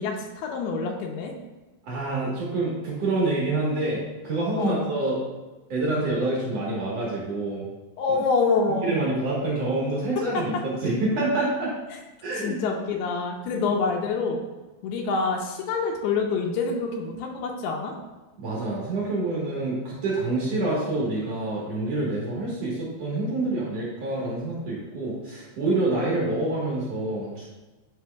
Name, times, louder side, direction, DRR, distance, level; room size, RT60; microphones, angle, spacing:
voice 1, 0.0-1.3 4.6-4.8 8.0-8.9 10.3-10.4 11.9-12.0 12.4-14.4 14.8-17.9, left 4 dB, 80° left, 1 dB, 2.6 m, -26 dB
voice 2, 1.8-5.2 5.7-7.6 8.8-11.7 12.2-12.6 13.5-13.6 18.4-27.5, right 2 dB, 65° right, -5 dB, 1.6 m, -27 dB
9.5 x 6.0 x 2.3 m, 1.2 s
omnidirectional pair, 4.8 m